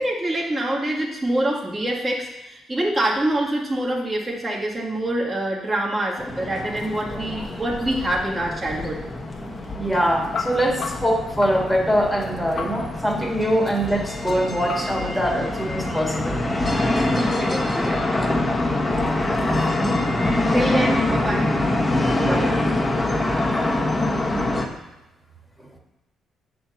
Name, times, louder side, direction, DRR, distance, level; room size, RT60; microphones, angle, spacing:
voice 1, 0.0-9.0 16.7-18.0 20.5-21.5, right 1 dB, 25° right, -3 dB, 2.0 m, -25 dB
sound 1, 6.2-24.7, left 2 dB, 15° left, 1.2 m, -25 dB
sound 2, 6.6-14.8, left 5 dB, 55° left, 1.1 m, -38 dB
voice 2, 9.7-16.5 16.9-17.1 22.2-22.5 25.6-25.7, equal, ahead, 0 dB, 1.8 m, -23 dB
8.2 x 4.4 x 7.0 m, 0.99 s
cardioid pair, 90°, 0 cm